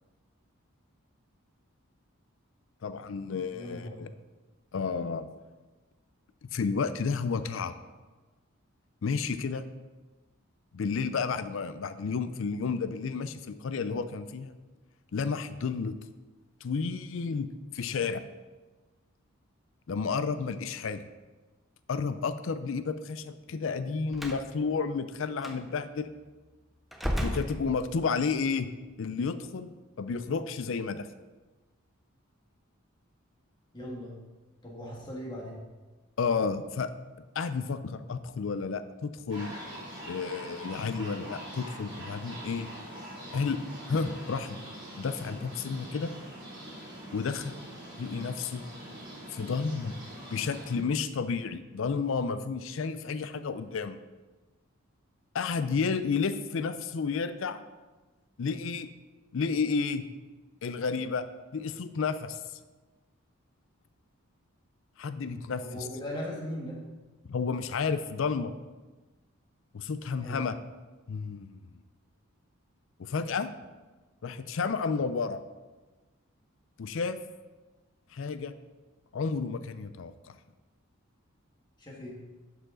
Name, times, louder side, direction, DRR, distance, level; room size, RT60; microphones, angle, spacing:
voice 1, 2.8-4.1 4.7-5.3 6.5-7.7 9.0-9.7 10.7-14.5 15.1-16.0 16.6-18.2 19.9-21.0 21.9-26.1 27.2-28.7 29.0-31.1 36.2-36.9 37.4-39.5 40.1-42.7 43.3-43.6 43.9-44.6 45.0-46.1 47.1-47.6 48.0-48.6 49.3-50.0 50.3-54.0 55.3-57.6 58.4-58.9 59.3-60.0 60.6-61.3 61.5-62.4 65.0-65.9 67.3-68.5 69.7-70.5 71.1-71.6 73.0-73.5 74.2-75.4 76.8-77.2 78.1-78.5 79.1-80.4, left 5 dB, 65° left, 12 dB, 0.4 m, -31 dB
voice 2, 3.5-4.0 33.7-34.1 34.6-35.6 65.6-66.8 70.2-70.4 81.8-82.2, left 1 dB, 20° left, -3 dB, 1.5 m, -38 dB
Slam, 24.1-24.5 25.4-25.6 26.9-28.2, equal, ahead, 0.5 m, -33 dB
sound 1, 39.3-50.8, right 1 dB, 20° right, 2.7 m, -44 dB
11.0 x 5.0 x 3.8 m, 1.2 s
head